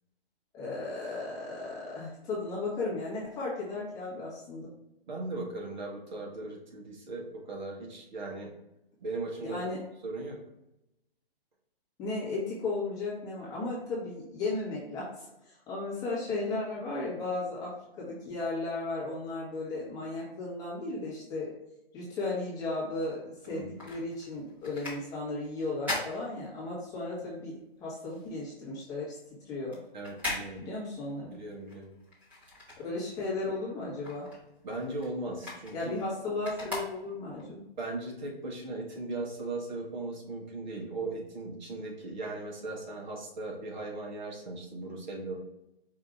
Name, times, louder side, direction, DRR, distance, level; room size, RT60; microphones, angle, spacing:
voice 1, 0.5-4.7 9.4-9.8 12.0-21.5 21.9-29.2 29.4-29.8 30.6-31.4 32.8-34.2 35.7-37.6, left 2 dB, 10° left, -6 dB, 1.1 m, -35 dB
voice 2, 5.1-8.5 9.0-9.6 10.0-10.4 23.5-23.7 29.9-30.7 31.3-31.9 34.6-35.7 37.8-45.3, right 2 dB, 50° right, -1 dB, 1.3 m, -38 dB
sound 1, 23.3-27.1 27.4-33.4 33.7-37.5 38.0-38.1, left 2 dB, 5° right, 0.9 m, -41 dB
5.0 x 2.7 x 3.5 m, 0.88 s
hypercardioid pair, 150°, 30 cm